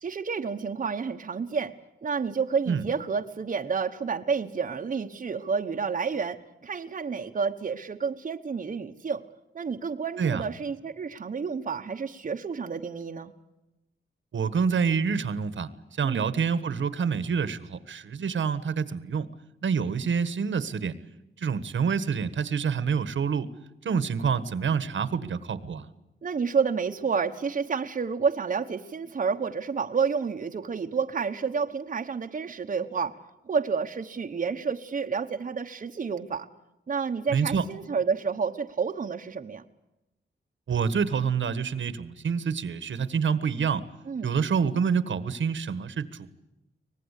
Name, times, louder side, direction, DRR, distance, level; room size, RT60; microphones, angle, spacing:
voice 1, 0.0-1.7 2.0-9.2 9.5-13.3 16.0-16.2 26.2-33.2 33.5-36.5 36.9-39.6 44.1-44.3, right 5 dB, 40° right, 4 dB, 1.1 m, -30 dB
voice 2, 14.3-15.7 16.0-19.3 19.6-20.9 21.4-23.5 23.8-25.9 37.3-37.6 40.7-43.8 44.2-46.3, right 6 dB, 75° right, 14 dB, 1.4 m, -27 dB
24.5 x 19.5 x 8.3 m, 0.96 s
wide cardioid pair, 150°, 20 cm